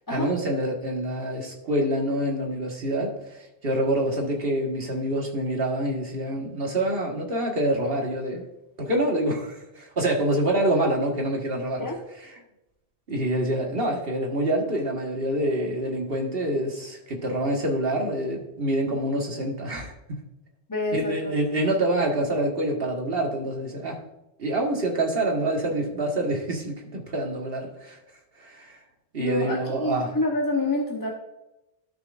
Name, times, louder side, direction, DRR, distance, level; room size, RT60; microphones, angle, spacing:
voice 1, 0.1-8.5 8.8-11.9 13.1-20.2 20.9-24.0 24.4-28.0 28.4-28.8 29.1-30.1, right 1 dB, 60° right, 0 dB, 1.8 m, -26 dB
voice 2, 20.7-21.3 29.2-31.1, left 2 dB, 20° left, -1 dB, 1.0 m, -27 dB
12.5 x 6.1 x 2.5 m, 0.91 s
omnidirectional pair, 1.1 m